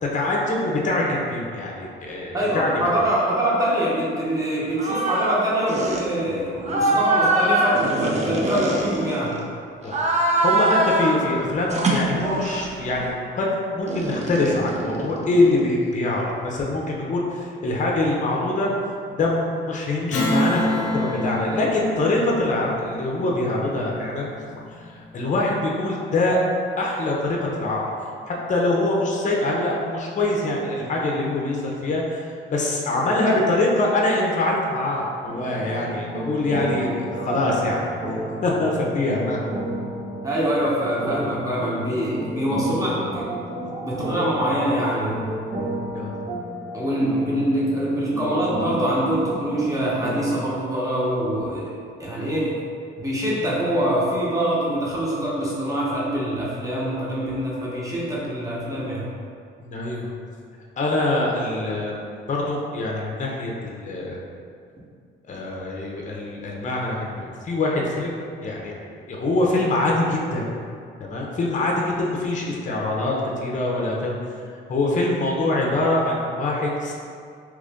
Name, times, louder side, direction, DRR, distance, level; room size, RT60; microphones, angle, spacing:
voice 1, 0.0-2.9 9.8-18.7 19.2-24.4 24.8-26.4 26.8-27.8 28.3-37.8 38.4-39.4 45.9-46.2 59.6-60.1 60.8-62.0 62.3-64.2 65.3-68.7 69.1-70.4 71.0-73.1 73.4-74.2 74.7-76.9, left 2 dB, 40° left, -2 dB, 0.6 m, -24 dB
voice 2, 2.3-9.4 40.2-43.4 43.8-45.3 46.7-52.5 53.0-59.1, right 1 dB, 15° right, -7 dB, 1.0 m, -24 dB
sound 1, 4.8-5.4 5.7-6.0 6.6-9.4 9.8-11.2 11.7-12.8 13.9-15.7, right 2 dB, 35° right, 0.5 m, -23 dB
Strum, 20.1-25.0, left 1 dB, 85° left, 0.6 m, -27 dB
sound 2, 35.3-50.5, right 1 dB, 65° right, 1.2 m, -32 dB
3.0 x 2.5 x 3.5 m, 2.3 s
cardioid pair, 90°, 20 cm